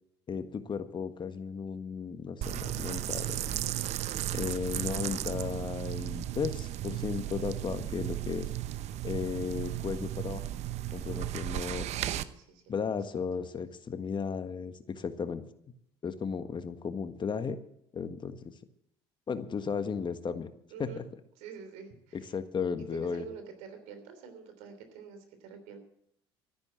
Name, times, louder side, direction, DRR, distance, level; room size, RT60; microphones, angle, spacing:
voice 1, 0.3-3.6 4.3-8.5 9.0-10.4 10.9-11.9 12.7-15.4 16.0-17.6 17.9-18.5 19.3-20.5 20.8-21.0 22.1-23.2, left 6 dB, 35° left, 10 dB, 1.5 m, -35 dB
sound 1, 2.4-12.2, right 13 dB, 60° right, 0.8 m, -35 dB
voice 2, 11.1-11.6 12.0-12.9 20.7-21.0 21.4-22.4 22.9-25.8, right 6 dB, 75° right, 8 dB, 3.3 m, -47 dB
13.5 x 10.5 x 7.5 m, 0.73 s
hypercardioid pair, 70°, 13 cm